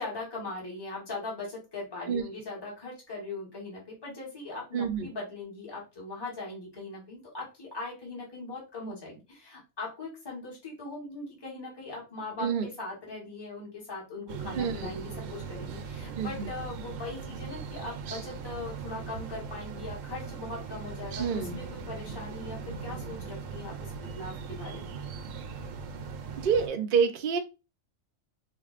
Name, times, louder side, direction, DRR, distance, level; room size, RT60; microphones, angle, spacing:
voice 1, 0.0-25.0, left 3 dB, 20° left, -3 dB, 1.2 m, -40 dB
voice 2, 4.7-5.1 12.4-12.7 14.5-14.9 16.2-16.5 21.2-21.6 26.4-27.4, right 6 dB, 50° right, 5 dB, 0.6 m, -27 dB
sound 1, 14.3-26.7, right 5 dB, 70° right, 0.9 m, -39 dB
4.4 x 2.5 x 2.4 m, 0.28 s
omnidirectional pair, 1.4 m